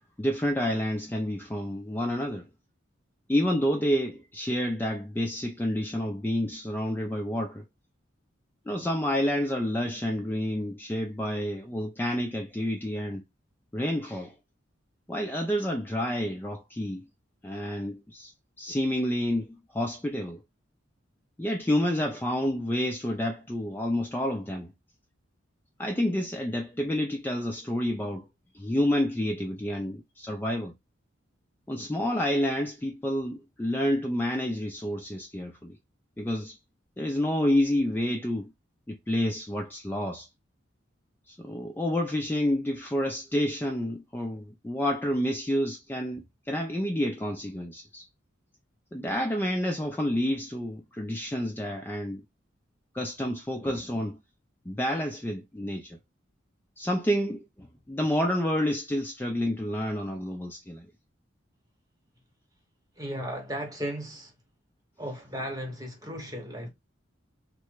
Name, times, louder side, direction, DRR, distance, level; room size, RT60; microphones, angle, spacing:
voice 1, 0.2-2.5 3.3-7.6 8.7-13.2 13.7-14.3 15.1-17.0 17.4-18.3 18.6-20.4 21.4-24.7 25.8-28.3 28.5-30.7 31.7-35.8 36.2-36.6 37.0-38.5 38.9-40.3 41.3-48.1 48.9-52.2 52.9-54.2 54.7-56.0 56.8-60.9, left 1 dB, 10° left, 0.3 m, -29 dB
voice 2, 63.0-64.3 65.0-66.7, equal, 20° right, 0.9 m, -35 dB
3.2 x 2.0 x 3.1 m
head